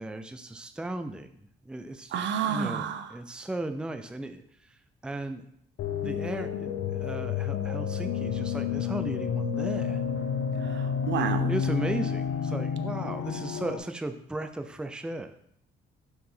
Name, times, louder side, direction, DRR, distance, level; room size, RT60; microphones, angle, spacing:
voice 1, 0.0-1.3 1.7-2.2 2.4-4.4 5.0-5.4 6.0-10.0 11.5-15.3, right 2 dB, 5° right, 8 dB, 0.4 m, -36 dB
voice 2, 2.1-3.1 11.1-11.5, right 7 dB, 65° right, 10 dB, 0.6 m, -29 dB
sound 1, 5.8-13.8, left 7 dB, 80° left, 0.7 m, -30 dB
4.8 x 3.7 x 5.5 m, 0.69 s
cardioid pair, 90°, 20 cm